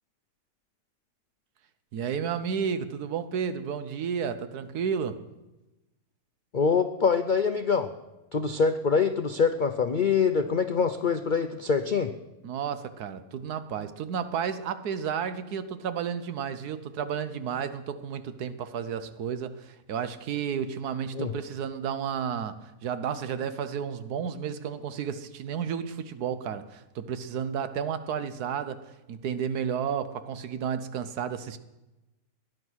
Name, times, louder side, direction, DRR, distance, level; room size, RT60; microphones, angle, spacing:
voice 1, 1.9-5.2 12.4-28.8 29.1-31.6, right 7 dB, 70° right, 12 dB, 1.4 m, -32 dB
voice 2, 6.5-7.9 8.3-12.1 21.1-21.3, left 5 dB, 70° left, 8 dB, 0.4 m, -24 dB
17.0 x 10.5 x 6.3 m, 1.0 s
omnidirectional pair, 1.7 m